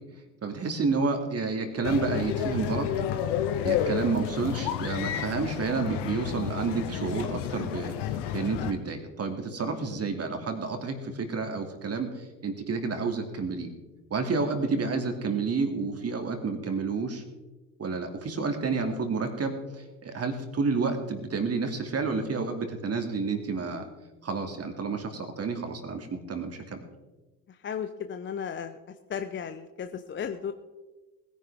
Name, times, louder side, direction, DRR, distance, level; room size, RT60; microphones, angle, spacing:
voice 1, 0.4-2.9 3.6-7.9 8.3-13.7 14.1-17.2 17.8-23.9 24.2-26.8, right 4 dB, 30° right, 5 dB, 2.5 m, -30 dB
sound 1, 1.8-8.7, left 10 dB, 55° left, 1.3 m, -31 dB
voice 2, 27.5-28.8 29.1-30.5, left 7 dB, 25° left, 8 dB, 0.7 m, -35 dB
20.5 x 10.5 x 3.6 m, 1.2 s
hypercardioid pair, 70°, 48 cm